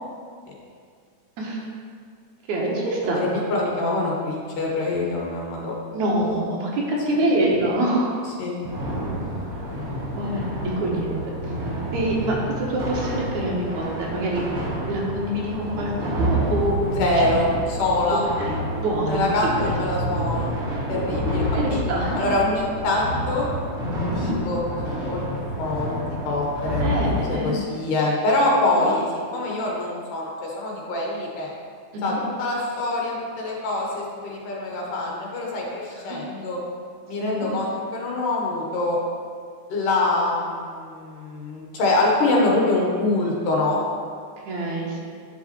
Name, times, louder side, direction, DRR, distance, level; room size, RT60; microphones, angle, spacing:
voice 1, 2.5-3.3 5.9-8.2 9.8-9.9 10.1-11.4 11.9-14.4 14.9-17.5 18.1-18.5 18.8-20.1 21.3-22.2 24.2-24.4 26.8-27.5 28.7-28.9 31.9-32.2 36.1-36.2 37.2-37.5 44.5-45.1, right 1 dB, 70° right, -3 dB, 2.7 m, -26 dB
voice 2, 3.0-5.8 8.4-8.6 16.9-18.3 19.1-20.6 20.9-21.8 22.2-23.5 24.1-25.2 25.6-29.1 29.3-31.5 32.0-36.6 37.1-39.0 39.7-43.8, left 2 dB, 80° left, -3 dB, 3.2 m, -25 dB
sound 1, 8.6-27.3, equal, 30° right, 2.7 m, -28 dB
10.5 x 5.8 x 4.4 m, 2.1 s
omnidirectional pair, 3.6 m